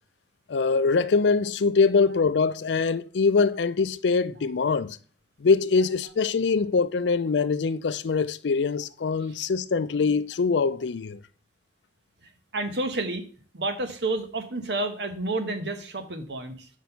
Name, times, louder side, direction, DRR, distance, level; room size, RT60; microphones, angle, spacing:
voice 1, 0.5-5.0 5.4-11.2, left 4 dB, 90° left, 0.5 m, -23 dB
voice 2, 12.5-13.2 13.5-16.7, right 2 dB, 75° right, 1.1 m, -30 dB
6.0 x 5.2 x 5.6 m
head